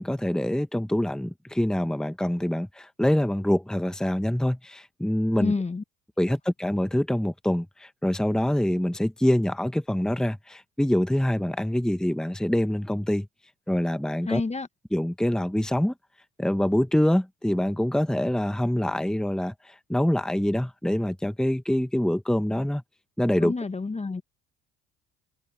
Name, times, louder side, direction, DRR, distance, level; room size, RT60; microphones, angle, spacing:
voice 1, 0.0-5.5 6.2-13.3 13.7-14.4 14.9-15.9 16.4-22.8 23.2-23.5, left 1 dB, ahead, 1.3 m, -25 dB
voice 2, 5.4-5.8 6.3-6.4 14.3-14.7 23.4-24.2, left 3 dB, 20° left, 1.4 m, -28 dB
hypercardioid pair, 65°, 32 cm